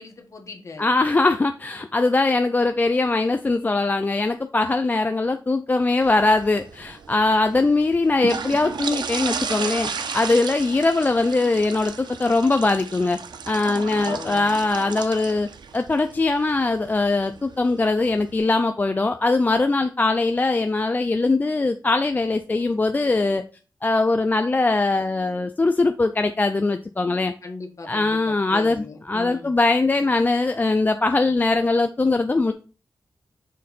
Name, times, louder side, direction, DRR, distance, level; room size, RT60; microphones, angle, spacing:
voice 1, 0.0-0.9 13.9-14.6 27.4-29.5, left 3 dB, 45° left, 4 dB, 1.3 m, -39 dB
voice 2, 0.8-13.2 13.5-15.5 15.7-23.4 23.8-27.3 27.9-32.5, left 3 dB, 25° left, 7 dB, 0.3 m, -21 dB
sound 1, 6.0-18.4, right 5 dB, 80° right, 0.7 m, -34 dB
6.4 x 3.7 x 4.1 m, 0.34 s
wide cardioid pair, 155°, 7 cm